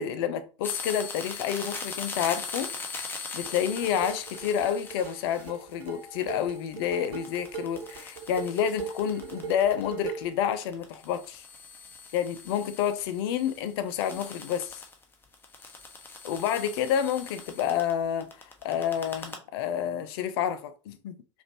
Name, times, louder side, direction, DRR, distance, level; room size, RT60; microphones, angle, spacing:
voice 1, 0.0-2.7 3.3-11.4 12.1-14.8 16.2-21.2, left 9 dB, 55° left, 0.6 m, -29 dB
sound 1, 0.6-10.2 10.5-17.9 18.2-19.4, left 4 dB, 15° left, 0.9 m, -41 dB
sound 2, 3.4-10.4, right 7 dB, 45° right, 1.2 m, -40 dB
5.0 x 2.6 x 2.9 m
figure-of-eight pair, 80°, 16 cm